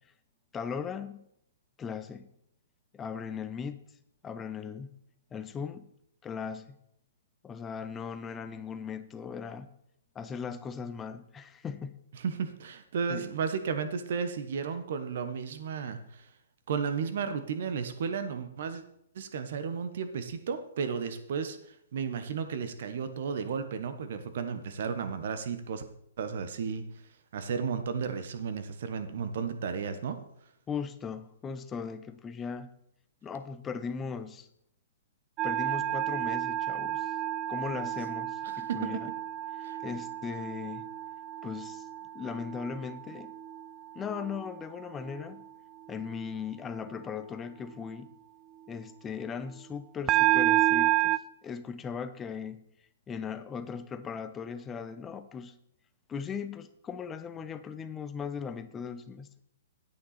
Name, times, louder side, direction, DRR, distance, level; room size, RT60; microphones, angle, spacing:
voice 1, 0.5-1.3 1.8-2.3 2.9-3.8 4.2-4.9 5.3-5.9 6.2-6.8 7.4-9.7 10.1-12.0 13.1-13.3 30.7-32.7 33.2-34.5 35.4-37.1 37.5-39.1 39.8-40.9 41.4-41.9 42.1-43.3 43.9-45.4 45.9-48.1 48.7-52.6 53.1-55.5 56.1-59.3, left 6 dB, 15° left, 11 dB, 0.7 m, -38 dB
voice 2, 12.2-16.2 16.7-18.8 19.1-25.8 26.2-26.8 27.3-30.2 38.5-39.0 39.6-39.8, right 6 dB, 60° right, 10 dB, 1.2 m, -33 dB
sound 1, 35.4-43.7 44.1-44.5 50.1-51.2, right 14 dB, 25° right, 0.4 m, -30 dB
9.6 x 8.6 x 4.3 m, 0.74 s
hypercardioid pair, 125°, 0 cm